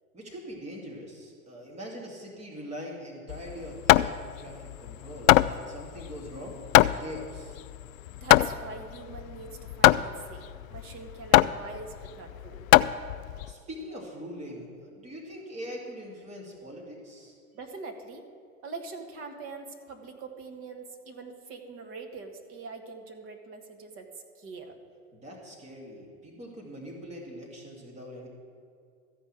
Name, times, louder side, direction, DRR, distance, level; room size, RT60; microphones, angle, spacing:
voice 1, 0.1-6.6 7.0-7.6 13.5-17.4 25.1-28.3, equal, 15° right, -2 dB, 2.4 m, -42 dB
Hammer, 3.3-13.5, left 16 dB, 65° left, 0.5 m, -23 dB
voice 2, 8.1-12.7 17.5-18.2 18.6-24.8, right 4 dB, 30° right, 4 dB, 1.6 m, -43 dB
14.0 x 5.6 x 8.9 m, 2.4 s
hypercardioid pair, 125°, 44 cm